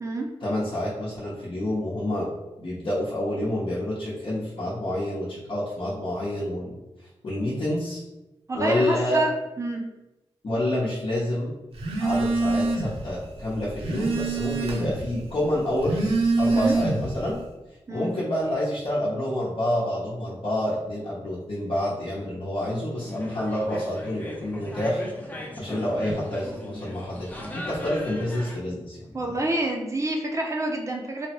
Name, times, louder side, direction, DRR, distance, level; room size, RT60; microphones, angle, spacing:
voice 1, 0.4-2.3 2.6-6.8 7.2-8.0 8.5-9.2 10.4-11.5 12.0-17.4 17.9-25.0 25.6-29.4, left 1 dB, 60° left, -9 dB, 0.8 m, -28 dB
voice 2, 8.5-9.3 9.6-9.8 16.5-16.7 17.9-18.1 29.1-31.3, right 2 dB, 30° right, 0 dB, 0.5 m, -27 dB
Telephone, 11.8-13.0 13.4-15.1 15.7-17.2, right 3 dB, 70° right, 0.7 m, -25 dB
sound 1, 23.0-28.6, left 1 dB, 15° left, 0.6 m, -38 dB
3.1 x 2.1 x 2.9 m, 1.0 s
cardioid pair, 75°, 10 cm